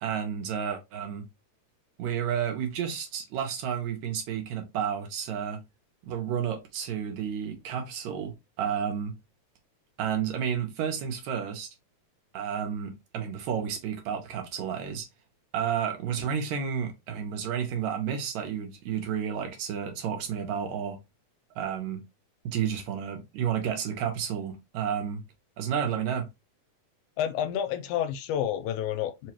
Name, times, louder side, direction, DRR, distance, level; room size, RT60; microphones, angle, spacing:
voice 1, 0.0-1.3 2.0-5.6 6.0-9.2 10.0-11.7 12.3-15.1 15.5-21.0 21.6-22.0 22.5-25.2 25.6-26.3, right 8 dB, 75° right, 2.0 m, -31 dB
voice 2, 27.2-29.3, left 10 dB, 80° left, 2.0 m, -29 dB
4.9 x 2.3 x 2.9 m
omnidirectional pair, 3.5 m